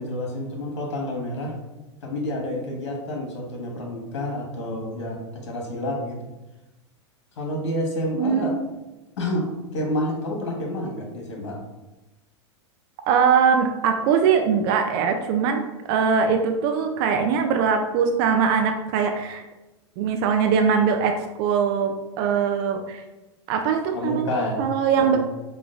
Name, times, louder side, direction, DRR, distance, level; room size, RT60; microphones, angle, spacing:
voice 1, 0.0-1.5 2.0-6.3 7.4-8.6 9.2-9.5 9.7-11.6 23.9-24.6 25.0-25.2, left 1 dB, 70° left, 0 dB, 1.2 m, -29 dB
voice 2, 8.2-8.6 13.1-15.6 15.9-19.4 20.0-21.1 21.4-23.0 23.5-25.2, right 6 dB, 50° right, 5 dB, 0.4 m, -21 dB
5.0 x 2.2 x 2.5 m, 1.0 s
hypercardioid pair, 110°, 15 cm